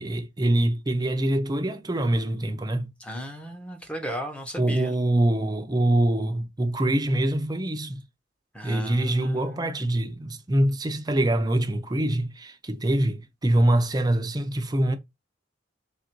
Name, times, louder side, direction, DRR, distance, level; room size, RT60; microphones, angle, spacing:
voice 1, 0.0-2.9 4.6-8.0 8.6-15.0, right 1 dB, 20° right, 0.6 m, -24 dB
voice 2, 3.0-5.0 8.5-9.8, equal, 5° left, 0.9 m, -35 dB
3.4 x 2.6 x 4.4 m
head